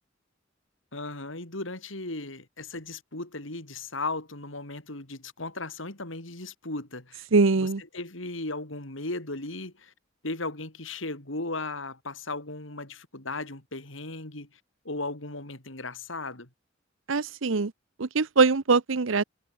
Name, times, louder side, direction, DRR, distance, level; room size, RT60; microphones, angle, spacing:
voice 1, 0.9-7.2 7.9-9.9 10.2-14.5 14.8-16.5, left 2 dB, 75° left, 4.5 m, -36 dB
voice 2, 7.3-7.8 17.1-17.7 18.0-19.2, right 4 dB, 80° right, 0.8 m, -22 dB
head